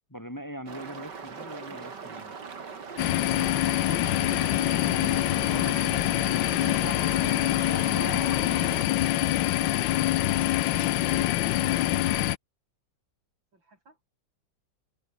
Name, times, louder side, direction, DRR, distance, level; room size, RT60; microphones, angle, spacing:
voice 1, 0.1-2.3 4.3-5.8 6.6-9.3, equal, 10° left, 3.4 m, -42 dB
sound 1, 0.7-8.8, right 5 dB, 65° right, 3.1 m, -40 dB
sound 2, 3.0-12.4, left 15 dB, 90° left, 1.4 m, -25 dB
voice 2, 13.5-14.0, right 2 dB, 85° right, 7.8 m, -59 dB
omnidirectional pair, 2.0 m